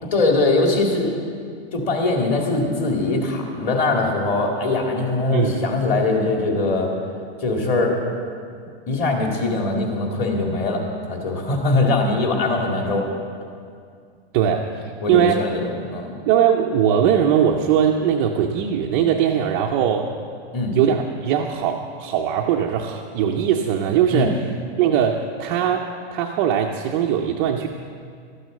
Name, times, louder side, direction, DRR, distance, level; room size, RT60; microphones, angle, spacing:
voice 1, 0.1-1.2 1.7-6.9 7.4-8.0 8.9-13.1 15.0-16.1 20.5-20.7 24.1-24.3, left 2 dB, 30° left, 1 dB, 2.2 m, -21 dB
voice 2, 5.3-5.6 14.3-14.7 15.1-15.4 16.3-20.1 20.7-24.5 24.8-27.7, right 9 dB, 20° right, 0 dB, 0.4 m, -20 dB
13.0 x 9.3 x 7.5 m, 2.2 s
supercardioid pair, 160°, 32 cm